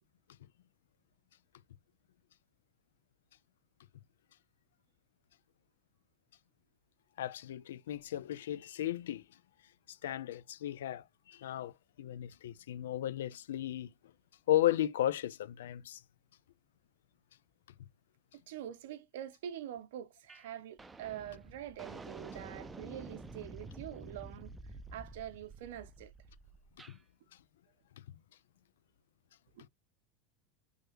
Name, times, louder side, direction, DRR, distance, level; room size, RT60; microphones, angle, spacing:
voice 1, 7.2-9.2 9.9-11.7 12.0-13.9 14.5-16.0 26.9-27.0, left 13 dB, 80° left, 0.3 m, -34 dB
voice 2, 18.3-24.5 24.9-26.1 29.6-29.7, right 11 dB, 75° right, 0.6 m, -45 dB
sound 1, 20.3-20.5 20.8-27.0, right 3 dB, 15° right, 0.5 m, -49 dB
3.2 x 2.3 x 3.0 m
hypercardioid pair, 105°, 0 cm